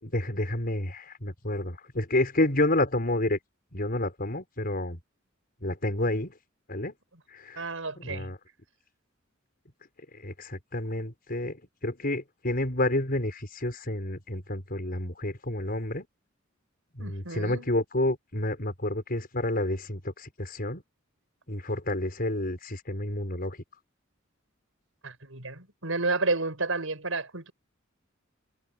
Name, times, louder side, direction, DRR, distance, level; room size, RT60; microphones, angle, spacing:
voice 1, 0.0-3.4 3.7-5.0 5.6-6.3 6.7-6.9 7.3-7.7 8.0-8.4 10.2-16.0 17.0-20.8 21.5-23.6, left 1 dB, 50° left, 5.9 m, -29 dB
voice 2, 7.6-8.3 17.0-17.7 25.0-27.5, right 3 dB, 80° right, 5.9 m, -31 dB
head